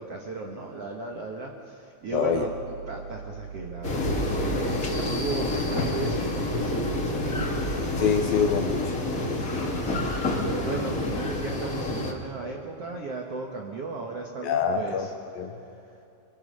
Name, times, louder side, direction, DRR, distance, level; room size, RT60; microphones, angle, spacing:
voice 1, 0.0-2.5 2.9-7.7 9.8-15.1, right 3 dB, 80° right, 1 dB, 1.3 m, -36 dB
voice 2, 2.1-2.5 8.0-8.9 14.4-15.1 15.4-15.5, left 7 dB, 75° left, 4 dB, 2.3 m, -25 dB
sound 1, 2.3-9.1, right 7 dB, 60° right, 8.1 m, -42 dB
sound 2, 3.8-12.1, left 2 dB, 50° left, 1.0 m, -28 dB
26.0 x 25.5 x 5.5 m, 2.7 s
omnidirectional pair, 5.1 m